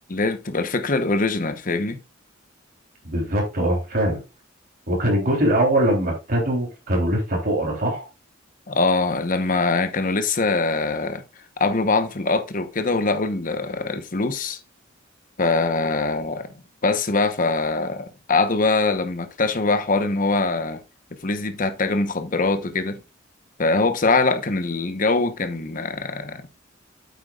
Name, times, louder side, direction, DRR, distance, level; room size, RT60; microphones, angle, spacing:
voice 1, 0.1-2.0 8.7-11.2 11.6-14.6 15.4-16.5 16.8-20.8 21.2-23.0 23.6-26.4, left 3 dB, 45° left, 1.0 m, -23 dB
voice 2, 3.0-4.2 4.9-8.1, right 1 dB, 50° right, 3.5 m, -22 dB
8.4 x 8.2 x 2.4 m
head